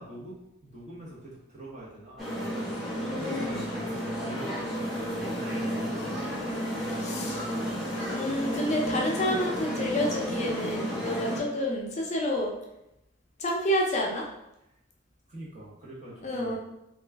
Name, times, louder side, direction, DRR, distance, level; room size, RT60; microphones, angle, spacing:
voice 1, 0.0-6.4 15.3-16.6, right 1 dB, 40° right, -6 dB, 1.0 m, -44 dB
sound 1, 2.2-11.4, equal, ahead, 1.0 m, -32 dB
voice 2, 3.0-3.7 6.9-7.4 8.0-12.6 13.4-14.3 16.2-16.6, left 1 dB, 35° left, -1 dB, 0.5 m, -29 dB
3.0 x 2.4 x 3.3 m, 0.87 s
head